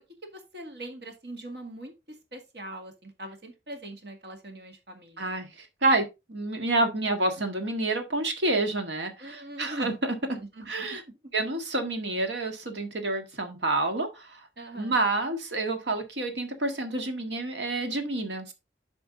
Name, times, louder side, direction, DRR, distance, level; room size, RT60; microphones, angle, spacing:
voice 1, 0.2-1.9 2.3-5.3 9.2-9.9 10.3-11.2 14.6-15.0, right 1 dB, 65° right, 2.0 m, -41 dB
voice 2, 5.2-10.2 10.7-11.0 11.3-14.4 14.8-18.5, right 2 dB, 85° right, 1.8 m, -28 dB
9.1 x 5.1 x 3.7 m
head